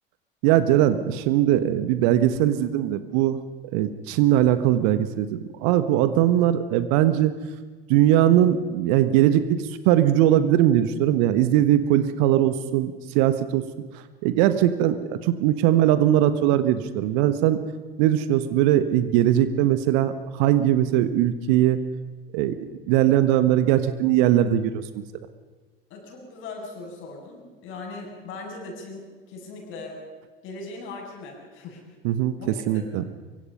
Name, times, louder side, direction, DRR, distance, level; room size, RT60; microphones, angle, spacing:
voice 1, 0.4-3.4 3.7-7.3 7.9-9.6 9.8-13.6 14.2-17.6 18.0-21.8 22.3-22.5 22.9-24.8 32.0-32.3 32.7-33.0, right 12 dB, 50° right, 12 dB, 1.4 m, -20 dB
voice 2, 25.9-30.0 30.4-31.8 32.4-32.9, left 3 dB, 40° left, 1 dB, 7.4 m, -39 dB
24.5 x 24.0 x 5.6 m, 1.3 s
figure-of-eight pair, 75°, 29 cm